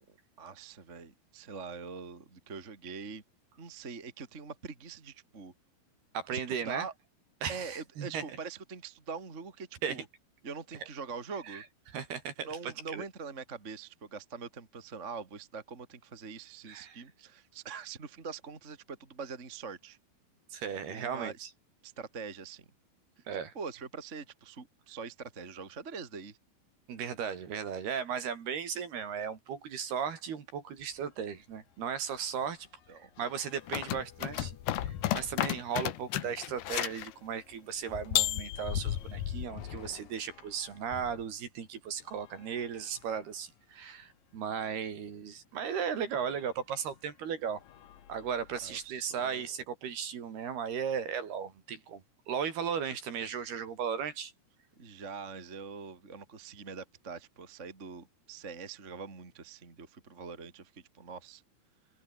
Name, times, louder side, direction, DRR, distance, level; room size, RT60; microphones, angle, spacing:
voice 1, 0.1-3.2 3.6-5.5 6.3-6.9 7.5-10.1 10.4-11.6 12.4-20.0 20.9-21.5 21.8-22.7 23.2-23.3 23.5-26.4 32.9-33.1 48.6-49.4 54.8-61.4, right 5 dB, 20° right, 2.0 m, -43 dB
voice 2, 6.1-6.9 7.4-8.4 9.8-10.0 11.4-11.6 11.9-13.0 16.7-17.0 20.5-21.5 23.3-23.5 26.9-32.7 33.2-34.5 34.8-47.6 48.1-54.3, right 7 dB, 55° right, 4.7 m, -36 dB
sound 1, 30.8-31.0 31.3-31.5 31.8-41.3 42.0-43.3 44.0-44.1 44.4-44.5 46.1-46.2 46.9-47.2 47.6-48.8, left 10 dB, 55° left, 2.9 m, -43 dB
sound 2, 33.7-37.1 38.2-39.0, left 14 dB, 70° left, 3.2 m, -32 dB
omnidirectional pair, 5.7 m